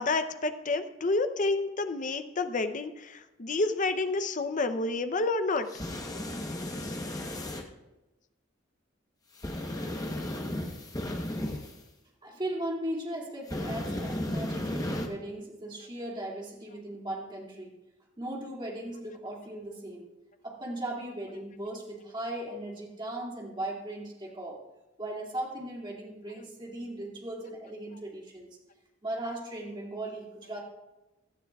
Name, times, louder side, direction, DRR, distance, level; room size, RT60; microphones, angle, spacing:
voice 1, 0.0-5.7 6.8-7.0, left 3 dB, 40° left, 9 dB, 0.7 m, -29 dB
sound 1, 5.7-7.6 9.4-11.7 13.5-15.1, left 1 dB, 20° left, 1.0 m, -34 dB
voice 2, 12.2-17.8 18.2-20.1 20.4-24.6 25.0-28.6 29.0-30.6, right 1 dB, 25° right, -2 dB, 2.4 m, -37 dB
17.0 x 11.5 x 2.4 m, 1.0 s
head